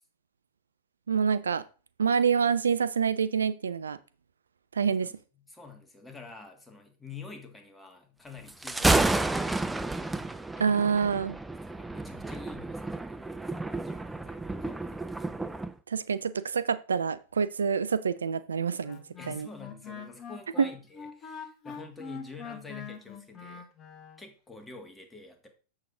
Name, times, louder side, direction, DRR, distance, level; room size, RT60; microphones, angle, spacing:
voice 1, 1.1-1.6 2.0-4.0 4.7-5.1 10.6-11.4 15.9-19.5 20.6-20.7, right 6 dB, 70° right, 0.4 m, -27 dB
voice 2, 5.0-9.8 11.6-13.4 13.8-15.0 19.2-23.7 24.2-25.5, left 4 dB, 10° left, 1.7 m, -48 dB
Thunder, 8.5-15.7, right 2 dB, 5° right, 0.5 m, -30 dB
Wind instrument woodwind instrument, 18.8-24.2, left 6 dB, 30° left, 1.3 m, -43 dB
7.4 x 6.4 x 3.7 m
figure-of-eight pair, 90°, 0 cm